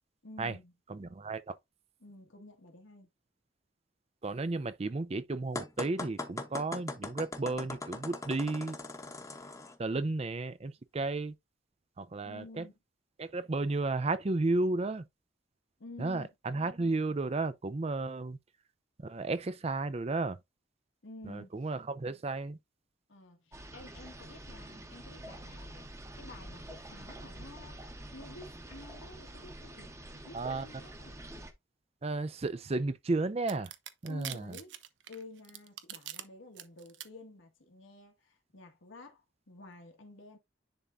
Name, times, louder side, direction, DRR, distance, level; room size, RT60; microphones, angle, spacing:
voice 1, 0.2-0.7 2.0-3.1 12.2-12.8 15.8-16.3 21.0-21.7 23.1-25.9 26.2-31.2 34.1-34.8 35.1-40.4, left 2 dB, 85° left, 1.7 m, -51 dB
voice 2, 0.9-1.5 4.2-8.8 9.8-11.3 12.0-12.6 13.2-15.0 16.0-18.4 19.0-20.4 21.3-22.6 30.3-30.7 32.0-33.7 34.0-34.4, right 3 dB, 30° right, 0.5 m, -33 dB
sound 1, 5.5-9.7, left 2 dB, 15° left, 0.9 m, -40 dB
sound 2, 23.5-31.5, right 1 dB, 15° right, 0.9 m, -47 dB
sound 3, 33.5-36.2 36.6-37.1, right 11 dB, 75° right, 0.8 m, -43 dB
10.5 x 3.6 x 2.6 m
head